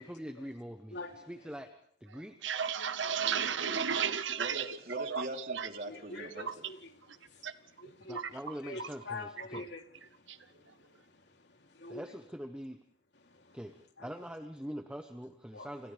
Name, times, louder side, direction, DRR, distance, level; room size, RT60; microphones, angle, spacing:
voice 1, 0.0-1.7 2.0-2.6 8.1-9.7 11.9-12.8 13.5-15.9, equal, 5° right, 1.1 m, -44 dB
voice 2, 0.9-1.3 3.0-4.4 5.0-5.1 5.8-12.1 13.2-13.6 14.0-14.1 15.5-15.7, left 2 dB, 65° left, 3.2 m, -47 dB
sound 1, 2.2-5.8 6.2-6.7 7.1-7.5 7.8-9.0 9.4-9.6 9.9-10.4, right 7 dB, 80° right, 1.0 m, -34 dB
voice 3, 4.3-6.5, right 1 dB, 50° right, 3.5 m, -42 dB
30.0 x 28.5 x 3.5 m
head